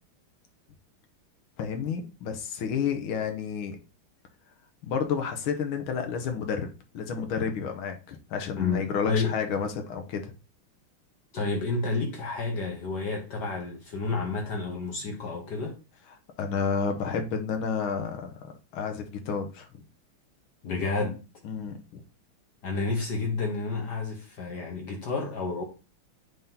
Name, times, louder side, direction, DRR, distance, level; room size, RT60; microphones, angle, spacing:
voice 1, 1.6-3.8 4.8-6.7 6.9-10.3 16.4-19.7 21.4-22.0, left 6 dB, 75° left, 1.7 m, -30 dB
voice 2, 8.6-9.3 11.3-15.7 20.6-21.2 22.6-25.6, left 3 dB, 60° left, 1.4 m, -30 dB
9.3 x 3.7 x 2.8 m
omnidirectional pair, 2.4 m